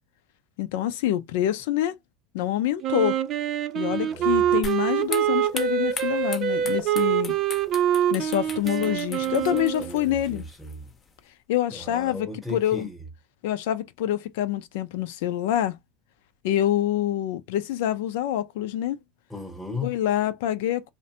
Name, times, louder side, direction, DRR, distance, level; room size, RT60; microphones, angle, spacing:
voice 1, 0.6-2.0 2.3-3.2 3.7-7.4 8.1-10.4 11.5-12.9 13.4-15.8 16.4-19.0 19.8-20.9, left 12 dB, 75° left, 0.3 m, -26 dB
Wind instrument woodwind instrument, 2.8-9.9, right 10 dB, 50° right, 0.5 m, -25 dB
voice 2, 3.9-4.4 8.5-10.9 11.7-13.0 19.3-20.0, left 2 dB, ahead, 0.8 m, -37 dB
sound 1, 4.6-11.2, left 4 dB, 30° left, 0.6 m, -40 dB
2.5 x 2.1 x 2.8 m
supercardioid pair, 100°, 0 cm